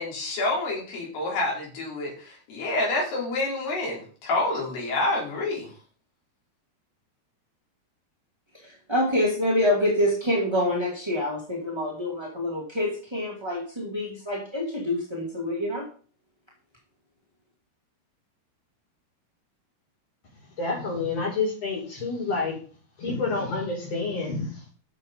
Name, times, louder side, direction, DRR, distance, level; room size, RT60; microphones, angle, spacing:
voice 1, 0.0-5.7, left 2 dB, 70° left, -3 dB, 6.6 m, -28 dB
voice 2, 8.5-15.9, left 1 dB, 10° right, -3 dB, 1.5 m, -26 dB
voice 3, 20.6-22.6 23.0-24.7, left 3 dB, 35° left, -1 dB, 6.1 m, -28 dB
11.0 x 7.6 x 5.4 m, 0.41 s
omnidirectional pair, 4.8 m